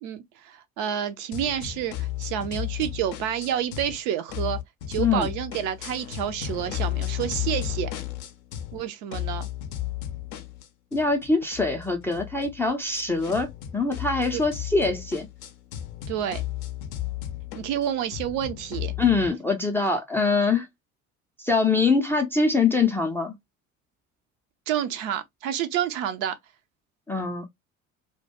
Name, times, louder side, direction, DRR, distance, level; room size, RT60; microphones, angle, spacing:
voice 1, 0.0-4.6 4.9-7.9 8.7-9.5 14.3-14.4 16.1-16.4 17.6-18.9 24.7-26.4, right 10 dB, 50° right, 0.5 m, -29 dB
sound 1, 1.3-4.0 4.3-8.8 9.1-19.3, left 13 dB, 55° left, 0.5 m, -34 dB
voice 2, 5.0-5.3 10.9-15.3 19.0-20.7 21.4-23.4 27.1-27.4, left 4 dB, 5° left, 0.4 m, -23 dB
2.2 x 2.1 x 2.7 m
figure-of-eight pair, 60°, 41 cm